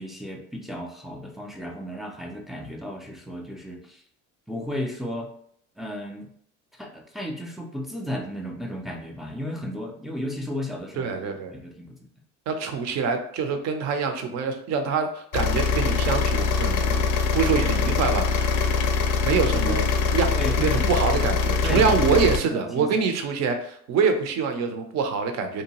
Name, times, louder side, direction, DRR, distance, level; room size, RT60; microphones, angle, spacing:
voice 1, 0.0-4.0 4.5-5.3 5.8-6.3 6.8-12.1 19.5-19.8 20.3-20.9 21.6-23.1, equal, ahead, 1 dB, 0.3 m, -34 dB
voice 2, 11.0-11.5 12.5-17.0 17.3-18.6 19.2-25.6, right 5 dB, 45° right, 6 dB, 0.6 m, -25 dB
sound 1, 15.3-22.4, left 5 dB, 65° left, 0.5 m, -23 dB
2.7 x 2.2 x 2.9 m, 0.64 s
supercardioid pair, 90°, 36 cm